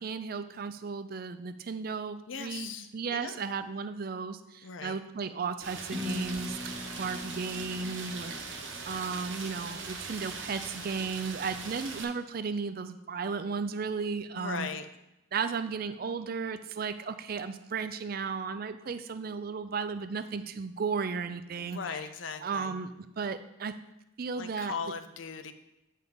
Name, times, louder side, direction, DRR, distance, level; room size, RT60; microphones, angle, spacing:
voice 1, 0.0-8.6 8.9-14.7 15.3-21.8 22.4-23.8 24.2-24.7, right 5 dB, 50° right, 11 dB, 0.4 m, -35 dB
voice 2, 2.3-3.5 4.6-5.0 14.3-14.9 21.6-22.8 24.3-25.5, left 5 dB, 80° left, 9 dB, 0.6 m, -39 dB
Rain, 5.6-12.0, right 4 dB, 70° right, 1.0 m, -40 dB
sound 1, 5.9-9.8, left 2 dB, 5° right, 0.9 m, -41 dB
8.5 x 5.5 x 3.9 m, 0.91 s
head